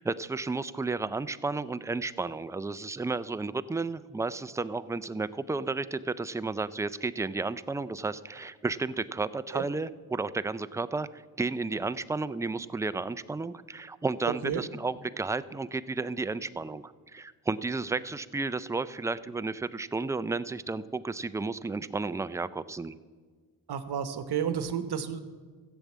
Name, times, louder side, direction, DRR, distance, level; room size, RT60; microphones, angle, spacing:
voice 1, 0.0-23.0, right 3 dB, 10° right, 14 dB, 0.3 m, -32 dB
voice 2, 23.7-25.2, right 8 dB, 65° right, 10 dB, 1.1 m, -31 dB
14.0 x 8.1 x 7.3 m, 1.5 s
cardioid pair, 85°, 43 cm